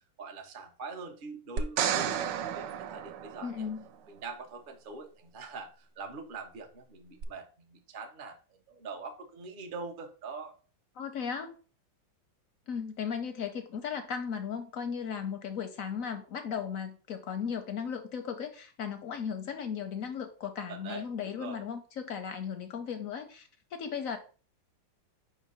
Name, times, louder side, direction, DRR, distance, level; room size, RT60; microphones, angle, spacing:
voice 1, 0.2-3.7 4.1-8.4 8.7-10.5 20.7-21.6, right 4 dB, 40° right, 4 dB, 0.7 m, -43 dB
sound 1, 1.6-3.9 7.2-7.3, right 8 dB, 75° right, 1.2 m, -32 dB
voice 2, 3.4-3.9 11.0-11.6 12.7-24.2, left 7 dB, 65° left, 7 dB, 0.8 m, -36 dB
5.1 x 3.7 x 5.3 m, 0.38 s
omnidirectional pair, 2.1 m